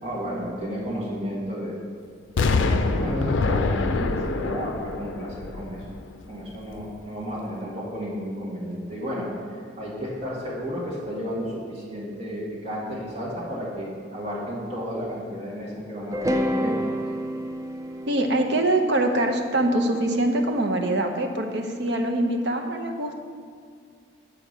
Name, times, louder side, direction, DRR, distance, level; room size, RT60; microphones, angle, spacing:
voice 1, 0.0-1.7 2.3-5.9 6.3-9.3 9.8-16.9, equal, 30° right, -6 dB, 1.9 m, -32 dB
Explosion, 2.4-6.3 6.7-6.8, left 3 dB, 75° left, 0.4 m, -25 dB
sound 1, 16.1-20.3, equal, 15° right, 0.3 m, -29 dB
voice 2, 18.1-23.2, right 1 dB, 60° right, 3 dB, 0.7 m, -24 dB
6.7 x 4.8 x 6.7 m, 2.1 s
head